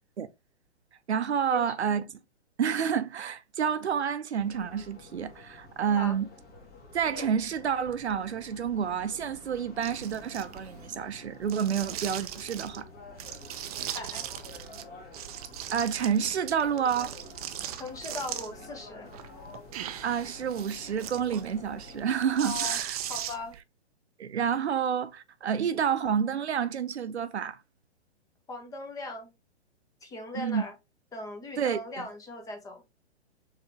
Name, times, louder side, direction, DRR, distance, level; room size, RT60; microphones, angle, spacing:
voice 1, 1.1-2.0 2.6-6.3 6.9-12.9 15.7-17.1 20.0-23.0 24.2-27.6 30.3-30.6 31.6-32.1, right 7 dB, 75° right, 0.7 m, -29 dB
sound 1, 4.3-22.1, left 2 dB, 30° left, 1.8 m, -49 dB
sound 2, 9.8-10.9 11.4-12.8 13.2-14.8 15.1-18.7 19.1-23.6, right 11 dB, 35° right, 0.5 m, -38 dB
voice 2, 13.8-14.3 17.8-19.1 22.4-22.8 23.1-23.6 28.5-29.3 30.0-30.7 31.1-32.8, left 3 dB, 10° left, 0.8 m, -39 dB
4.7 x 3.5 x 3.1 m
figure-of-eight pair, 125°, 33 cm